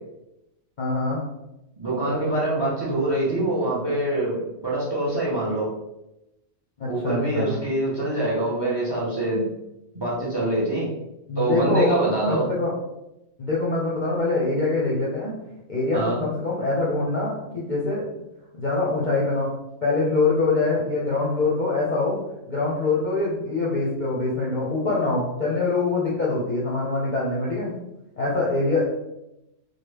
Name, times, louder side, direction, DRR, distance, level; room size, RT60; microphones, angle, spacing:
voice 1, 0.8-1.2 6.8-7.6 11.3-12.0 12.3-12.7 13.4-15.3 15.7-18.0 18.6-19.5 19.8-22.2 22.5-27.7 28.2-28.9, left 3 dB, 50° left, -5 dB, 0.6 m, -24 dB
voice 2, 1.8-4.4 4.6-5.7 6.9-9.5 9.9-10.9 11.4-12.5 15.9-16.2, right 1 dB, 25° right, -6 dB, 0.8 m, -24 dB
3.1 x 2.3 x 3.3 m, 0.90 s
omnidirectional pair, 1.3 m